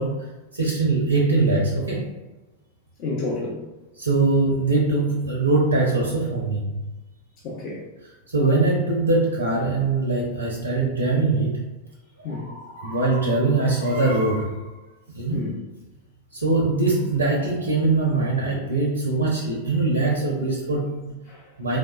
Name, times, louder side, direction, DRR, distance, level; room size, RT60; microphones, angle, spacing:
voice 1, 0.0-2.1 4.0-6.7 8.3-11.7 12.5-14.6 15.1-15.5 16.3-21.1 21.6-21.8, right 3 dB, 80° right, -1 dB, 0.4 m, -22 dB
voice 2, 3.0-3.7 7.4-7.9 12.2-12.5 15.3-15.6 21.3-21.5, left 3 dB, 40° left, -5 dB, 0.5 m, -30 dB
3.1 x 2.0 x 2.3 m, 1.1 s
figure-of-eight pair, 90°, 0 cm